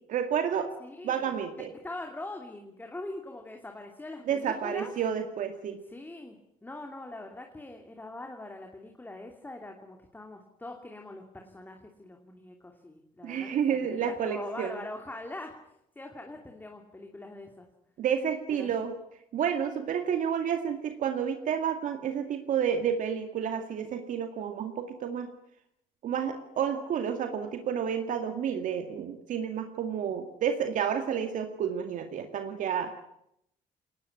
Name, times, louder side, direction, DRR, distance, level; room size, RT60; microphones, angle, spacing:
voice 1, 0.1-0.7 1.0-1.7 4.3-5.8 13.2-14.8 18.0-18.9 19.3-25.3 26.0-33.0, right 8 dB, 60° right, 7 dB, 2.1 m, -30 dB
voice 2, 0.8-1.3 1.8-4.9 5.9-15.5 15.9-17.7 18.5-18.7, left 2 dB, 10° left, 3 dB, 2.8 m, -42 dB
22.0 x 19.0 x 9.8 m, 0.77 s
cardioid pair, 120°, 15 cm